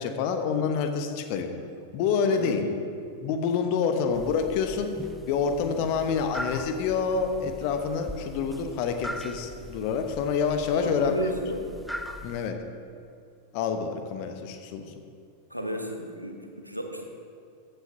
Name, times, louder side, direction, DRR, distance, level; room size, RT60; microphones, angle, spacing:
voice 1, 0.0-1.5 1.9-2.6 3.2-4.9 5.3-11.1 12.2-12.6 13.5-14.9, left 6 dB, 45° left, 7 dB, 0.9 m, -27 dB
voice 2, 2.3-2.7 10.7-11.6 15.5-17.0, equal, 90° right, 3 dB, 1.0 m, -33 dB
sound 1, 4.1-12.5, equal, ahead, 0.5 m, -41 dB
14.5 x 9.0 x 2.8 m, 2.4 s
figure-of-eight pair, 90°, 0 cm